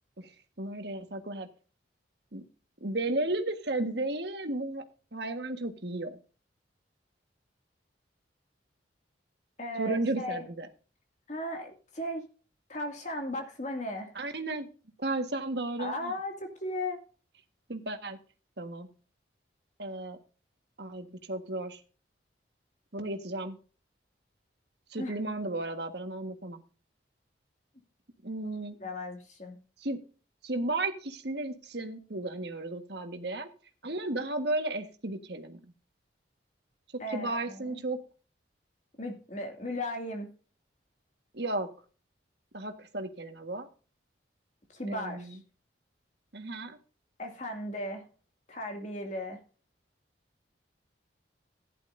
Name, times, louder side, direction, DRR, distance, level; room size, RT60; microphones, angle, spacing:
voice 1, 0.6-1.5 2.3-2.4 2.8-4.8 5.1-6.2 9.8-10.7 14.1-14.7 15.0-16.1 17.7-18.2 18.6-18.9 19.8-20.2 20.8-21.8 22.9-23.6 24.9-26.6 28.2-28.8 29.8-30.0 30.4-33.5 33.8-35.6 37.1-38.0 41.3-41.7 42.5-43.7 44.9-45.4 46.3-46.8, right 2 dB, 60° right, 7 dB, 1.6 m, -34 dB
voice 2, 9.6-10.5 11.3-12.2 12.7-14.1 15.8-17.0 25.0-25.1 28.8-29.6 37.0-37.8 39.0-40.3 44.7-45.4 47.2-48.1 48.5-49.4, left 1 dB, 40° left, 3 dB, 2.4 m, -36 dB
15.5 x 11.0 x 2.7 m, 0.37 s
head